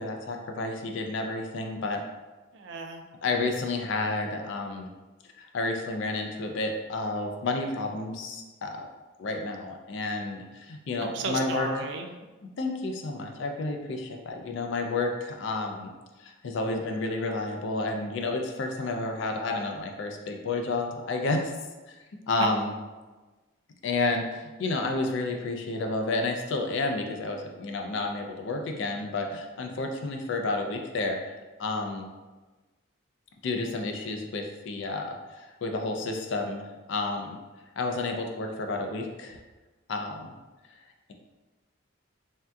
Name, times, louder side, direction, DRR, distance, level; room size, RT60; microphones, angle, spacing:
voice 1, 0.0-2.0 3.2-4.9 5.4-8.9 9.2-11.7 12.6-15.9 16.2-21.5 21.9-22.0 22.3-22.7 23.8-32.1 33.4-37.4 37.8-39.4 39.9-40.3, left 3 dB, 65° left, 3 dB, 0.4 m, -31 dB
voice 2, 2.5-3.0 11.1-12.1 22.4-22.5, right 4 dB, 55° right, 4 dB, 0.3 m, -33 dB
3.4 x 2.7 x 2.2 m, 1.2 s
head